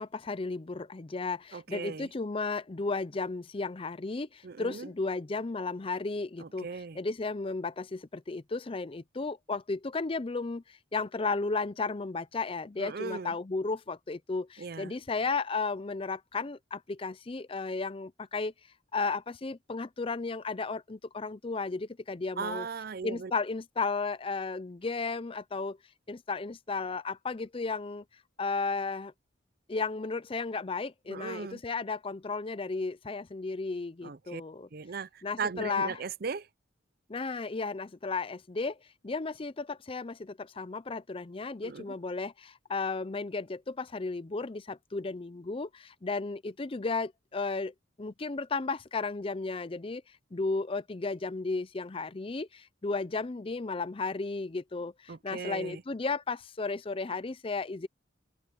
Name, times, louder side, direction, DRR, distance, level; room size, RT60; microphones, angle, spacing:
voice 1, 0.0-6.7 7.0-18.5 18.9-22.7 23.0-25.8 26.1-28.0 28.4-29.1 29.7-34.7 35.2-36.0 37.1-38.8 39.0-50.0 50.3-57.9, left 3 dB, 30° left, 0.5 m, -34 dB
voice 2, 1.5-2.1 4.4-4.9 6.4-7.0 12.8-13.4 14.6-14.9 22.4-23.3 31.1-31.6 34.0-34.4 34.7-36.5 41.6-41.9 55.1-55.8, right 5 dB, 50° right, 0.6 m, -38 dB
open air
head